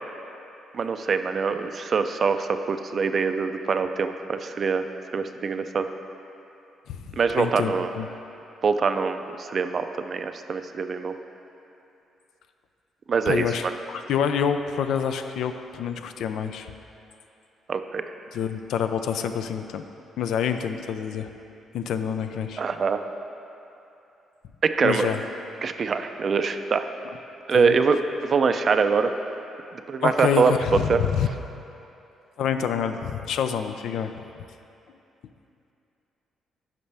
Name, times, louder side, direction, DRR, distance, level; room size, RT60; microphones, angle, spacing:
voice 1, 0.7-4.8 5.1-5.9 7.1-7.9 8.6-11.1 13.1-13.7 17.7-18.0 22.6-23.0 24.6-25.1 25.6-26.9 27.5-29.1 29.9-30.5 30.9-31.0, right 5 dB, 45° right, 8 dB, 0.4 m, -24 dB
voice 2, 6.9-8.1 13.3-16.7 18.3-19.8 20.2-21.3 21.7-22.6 24.8-25.2 27.5-27.8 30.0-31.3 32.4-34.1, left 8 dB, 80° left, 8 dB, 0.4 m, -27 dB
10.5 x 5.8 x 3.4 m, 2.8 s
cardioid pair, 90°, 0 cm